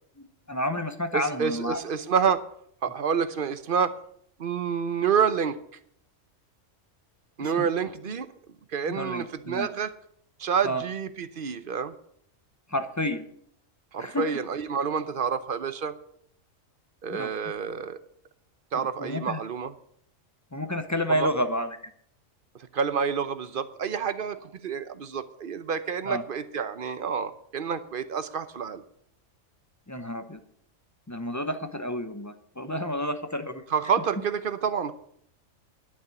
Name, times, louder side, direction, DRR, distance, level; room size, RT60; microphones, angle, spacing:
voice 1, 0.2-1.8 7.6-7.7 8.9-9.7 10.6-10.8 12.7-13.2 14.0-14.3 17.1-17.3 19.0-19.4 20.5-21.8 26.1-26.2 29.9-30.4 31.1-33.6, equal, 15° left, 9 dB, 0.7 m, -30 dB
voice 2, 1.1-2.4 2.8-3.9 4.4-5.6 7.4-8.3 8.7-9.9 10.4-11.9 13.9-15.9 17.0-18.0 18.7-19.7 21.1-21.3 22.7-28.8 33.7-34.9, right 6 dB, 50° right, 12 dB, 0.9 m, -28 dB
11.0 x 7.0 x 8.0 m, 0.66 s
omnidirectional pair, 1.4 m